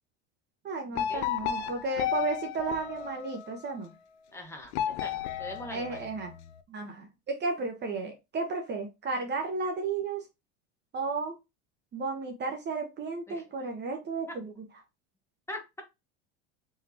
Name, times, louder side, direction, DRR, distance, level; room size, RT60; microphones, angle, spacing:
voice 1, 0.6-3.9 5.7-6.3 6.7-10.2 10.9-11.4 11.9-14.5, right 3 dB, 30° right, 4 dB, 0.9 m, -33 dB
sound 1, 0.9-3.6 4.7-6.5, left 10 dB, 75° left, 0.6 m, -33 dB
voice 2, 4.3-6.1 13.3-13.4 15.5-15.8, left 1 dB, 10° left, 2 dB, 1.2 m, -42 dB
3.7 x 3.4 x 2.8 m, 0.24 s
supercardioid pair, 100°, 34 cm